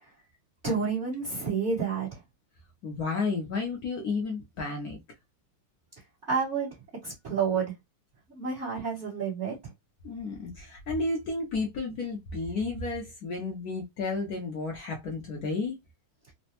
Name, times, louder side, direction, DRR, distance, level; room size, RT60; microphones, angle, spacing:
voice 1, 0.6-2.2 6.3-6.7 7.0-7.7 8.3-9.5, right 5 dB, 35° right, 1.4 m, -29 dB
voice 2, 2.8-5.0 10.0-15.8, left 3 dB, 65° left, 0.9 m, -32 dB
4.0 x 2.1 x 2.8 m
omnidirectional pair, 2.4 m